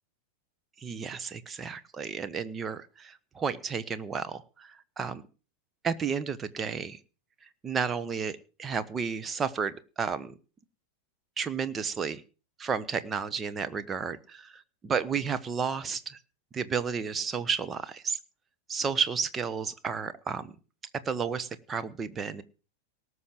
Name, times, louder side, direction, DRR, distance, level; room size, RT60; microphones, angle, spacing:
voice 1, 0.8-5.2 5.8-7.0 7.6-10.3 11.4-12.2 12.6-16.2 16.5-18.2 18.7-20.5 21.0-22.4, right 6 dB, 20° right, 14 dB, 1.2 m, -32 dB
18.5 x 6.4 x 7.5 m, 0.35 s
figure-of-eight pair, 90°, 0 cm